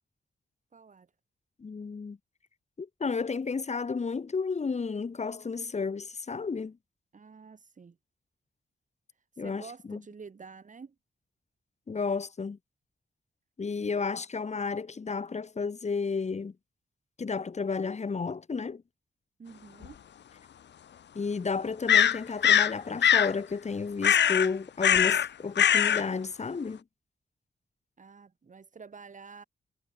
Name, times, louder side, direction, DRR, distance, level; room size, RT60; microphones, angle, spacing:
voice 1, 0.7-1.1 7.1-8.0 9.3-10.9 13.8-14.0 19.4-20.0 28.0-29.4, right 5 dB, 45° right, 4.2 m, -49 dB
voice 2, 1.6-2.2 2.8-6.8 9.4-10.0 11.9-12.6 13.6-16.5 17.2-18.8 21.1-26.8, left 5 dB, 40° left, 2.4 m, -32 dB
sound 1, 19.8-19.9 21.9-22.7 23.0-23.3 24.0-24.5 24.8-25.3 25.6-26.0, left 9 dB, 75° left, 0.8 m, -21 dB
wide cardioid pair, 145°, 18 cm